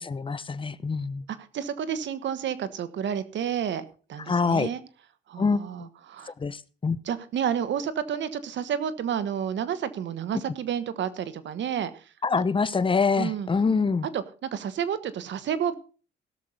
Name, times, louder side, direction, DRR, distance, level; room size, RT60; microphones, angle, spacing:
voice 1, 0.0-1.3 4.3-4.7 5.4-5.9 6.3-7.0 12.2-14.1, left 4 dB, 25° left, 16 dB, 0.8 m, -25 dB
voice 2, 1.4-3.8 4.1-4.8 5.3-6.3 7.0-12.0 13.2-13.5 14.1-15.7, right 8 dB, 65° right, 14 dB, 1.4 m, -30 dB
17.0 x 6.7 x 5.5 m, 0.36 s
cardioid pair, 90°, 20 cm